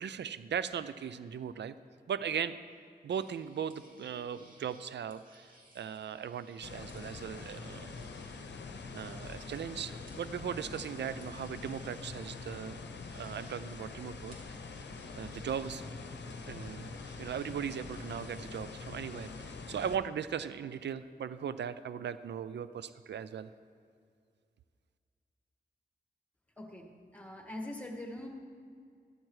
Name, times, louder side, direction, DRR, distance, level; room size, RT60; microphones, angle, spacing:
voice 1, 0.0-1.8 2.1-2.6 3.0-8.0 8.9-12.8 13.1-14.6 15.2-16.1 16.4-23.5, right 8 dB, 85° right, 13 dB, 0.4 m, -38 dB
sound 1, 3.1-19.5, right 1 dB, 50° right, 2.4 m, -62 dB
sound 2, 6.6-20.0, left 4 dB, 80° left, 0.7 m, -44 dB
voice 2, 26.6-28.3, left 1 dB, 10° left, 1 dB, 1.7 m, -43 dB
13.5 x 12.5 x 3.2 m, 2.2 s
wide cardioid pair, 90°, 18 cm